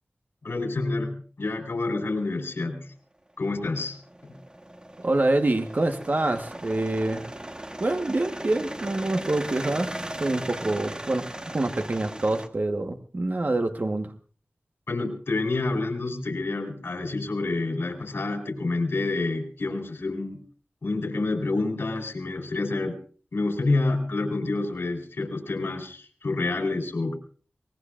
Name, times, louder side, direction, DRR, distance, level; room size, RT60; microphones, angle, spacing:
voice 1, 0.4-2.9 3.4-4.0 4.2-4.4 14.9-20.4 20.8-23.0 23.3-27.2, left 3 dB, 80° left, 4 dB, 4.1 m, -28 dB
sound 1, 3.4-12.5, right 1 dB, 20° right, 1.3 m, -38 dB
voice 2, 5.0-7.3 7.8-9.9 10.2-11.3 11.5-14.1, right 2 dB, 45° right, 6 dB, 1.3 m, -26 dB
23.5 x 20.0 x 2.5 m, 0.42 s
wide cardioid pair, 70°, 4 cm